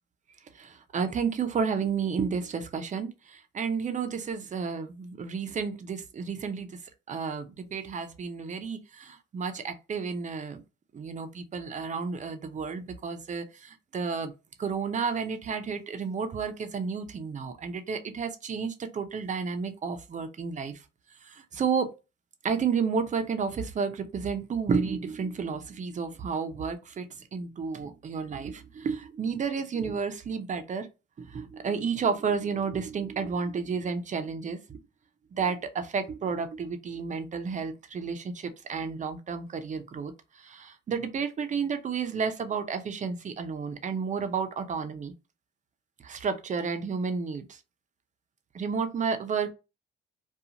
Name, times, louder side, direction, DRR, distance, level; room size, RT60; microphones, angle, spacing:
voice 1, 0.5-6.8 7.1-10.6 10.9-14.3 14.6-20.8 21.2-21.9 22.4-30.9 31.2-34.8 35.3-45.1 46.0-47.6 48.5-49.5, right 5 dB, 40° right, 0.6 m, -31 dB
2.5 x 2.3 x 2.8 m
cardioid pair, 90°, 20 cm